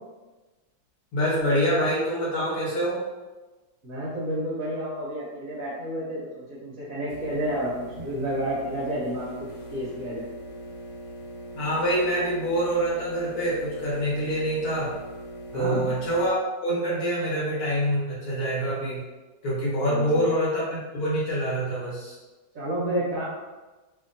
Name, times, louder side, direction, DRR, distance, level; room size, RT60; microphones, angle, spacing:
voice 1, 1.1-3.0 11.5-14.9 15.5-19.0 19.4-22.2, equal, 60° left, -7 dB, 1.3 m, -26 dB
voice 2, 3.8-10.3 15.5-15.9 19.8-20.2 22.5-23.2, equal, 65° right, -7 dB, 0.9 m, -30 dB
sound 1, 7.1-16.3, right 1 dB, 85° left, 1.5 m, -41 dB
2.8 x 2.7 x 2.5 m, 1.2 s
omnidirectional pair, 2.0 m